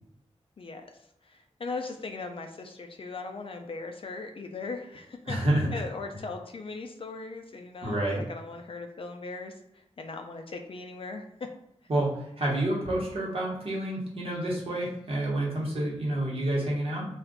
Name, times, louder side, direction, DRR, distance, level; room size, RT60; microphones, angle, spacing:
voice 1, 0.6-5.4 5.7-11.3, left 3 dB, 55° left, 5 dB, 0.4 m, -39 dB
voice 2, 5.3-5.8 7.8-8.2 11.9-17.1, right 1 dB, 60° right, -4 dB, 1.1 m, -29 dB
2.4 x 2.2 x 3.6 m, 0.81 s
wide cardioid pair, 110°, 11 cm